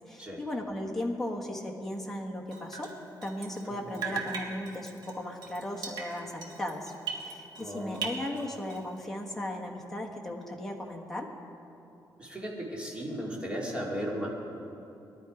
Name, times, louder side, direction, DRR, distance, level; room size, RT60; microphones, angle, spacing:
voice 1, 0.1-2.9 3.2-6.9 7.2-11.3, left 1 dB, 5° left, -1 dB, 1.4 m, -36 dB
Drip, 2.5-3.7 3.9-7.7 7.9-9.0, right 5 dB, 65° right, 1.8 m, -39 dB
voice 2, 3.7-4.2 7.6-8.1 12.2-14.3, equal, 15° right, -3 dB, 2.4 m, -36 dB
20.5 x 11.5 x 5.0 m, 2.8 s
cardioid pair, 165°, 8 cm